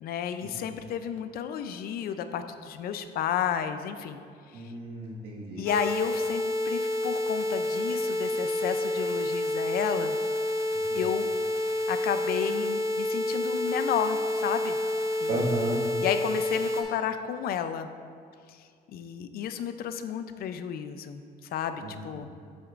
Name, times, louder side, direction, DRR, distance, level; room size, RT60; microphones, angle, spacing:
voice 1, 0.0-4.2 4.5-4.6 5.6-10.2 10.9-11.3 11.6-14.8 15.2-15.4 16.0-17.9 18.9-21.2 21.5-22.3, left 8 dB, 65° left, 9 dB, 0.5 m, -32 dB
voice 2, 4.5-5.6 10.9-11.0 15.3-15.8 21.8-22.3, right 1 dB, 70° right, -4 dB, 1.7 m, -33 dB
sound 1, 5.7-16.8, left 1 dB, 15° right, 1.1 m, -29 dB
8.0 x 7.8 x 2.5 m, 2.3 s
cardioid pair, 110°, 17 cm